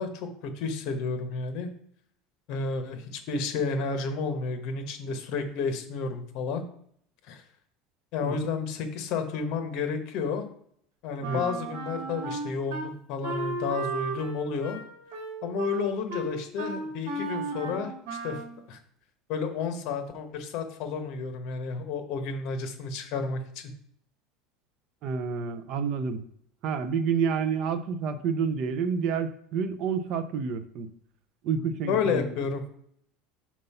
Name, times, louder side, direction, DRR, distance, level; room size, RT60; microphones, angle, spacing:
voice 1, 0.0-1.7 2.5-6.6 7.3-7.4 8.1-10.4 11.0-14.8 15.4-17.9 18.2-18.8 19.3-23.7 31.9-32.7, left 5 dB, 50° left, 7 dB, 1.2 m, -31 dB
Wind instrument woodwind instrument, 11.2-12.9 13.2-18.6, right 3 dB, 75° right, 1.9 m, -34 dB
voice 2, 25.0-26.2 26.6-30.9 31.4-32.3, right 6 dB, 45° right, 11 dB, 0.6 m, -29 dB
5.4 x 4.5 x 5.6 m, 0.66 s
cardioid pair, 155°, 0 cm